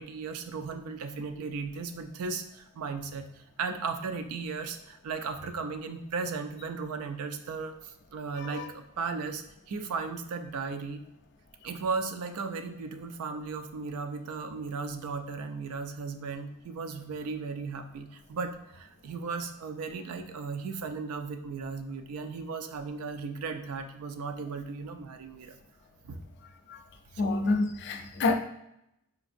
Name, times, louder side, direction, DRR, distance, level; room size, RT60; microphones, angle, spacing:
voice 1, 0.0-3.3 3.6-11.0 11.6-25.6 26.0-26.2, right 4 dB, 80° right, 0.4 m, -36 dB
voice 2, 27.2-28.3, left 3 dB, 50° left, 0.4 m, -28 dB
3.9 x 2.5 x 2.5 m
head